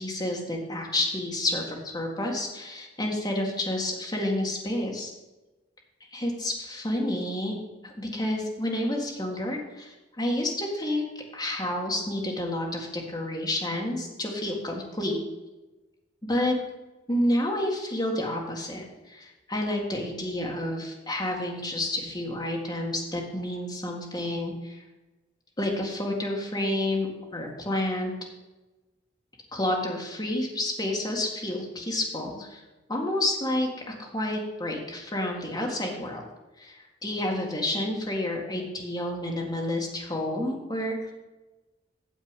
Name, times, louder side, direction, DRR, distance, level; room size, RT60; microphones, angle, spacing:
voice 1, 0.0-5.1 6.1-7.5 7.8-11.0 11.3-15.2 16.2-16.6 17.1-24.8 25.6-28.1 29.5-32.6 32.9-36.2 36.6-41.0, left 1 dB, 20° left, -1 dB, 1.8 m, -29 dB
9.2 x 7.3 x 5.2 m, 1.1 s
head